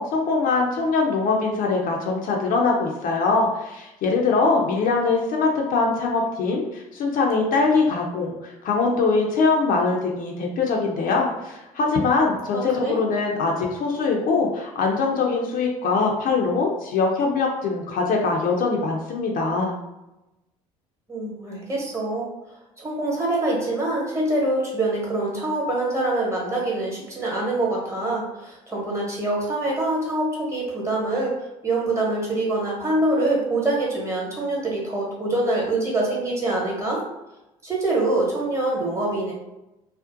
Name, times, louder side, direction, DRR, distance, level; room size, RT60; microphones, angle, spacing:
voice 1, 0.0-19.8, left 4 dB, 55° left, 0 dB, 0.5 m, -22 dB
voice 2, 12.5-13.0 21.1-22.3 22.8-31.4 31.6-37.0 37.6-39.3, right 2 dB, 15° right, -3 dB, 1.0 m, -25 dB
2.5 x 2.0 x 2.5 m, 0.96 s
hypercardioid pair, 60°, 18 cm